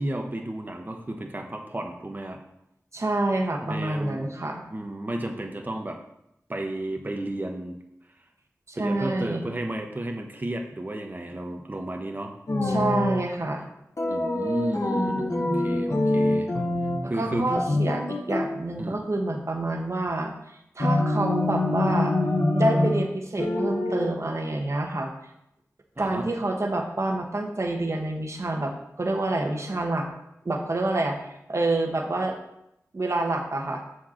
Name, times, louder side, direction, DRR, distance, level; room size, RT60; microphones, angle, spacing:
voice 1, 0.0-2.4 3.6-4.3 4.7-6.0 6.5-7.8 8.8-12.3 14.0-16.5 17.1-17.8 18.8-19.0 26.0-26.3, right 1 dB, 30° right, 3 dB, 1.1 m, -32 dB
voice 2, 2.9-4.6 8.7-9.4 12.6-13.7 14.9-15.6 17.0-20.3 20.8-22.1 22.5-25.1 26.0-30.1 30.4-32.4 32.9-33.8, right 2 dB, 55° right, 2 dB, 1.3 m, -27 dB
sound 1, 12.5-13.2 14.0-17.1 17.3-18.5 20.8-23.1 23.4-24.1, left 2 dB, 60° left, 1.6 m, -25 dB
7.3 x 4.6 x 5.8 m, 0.82 s
cardioid pair, 40°, 6 cm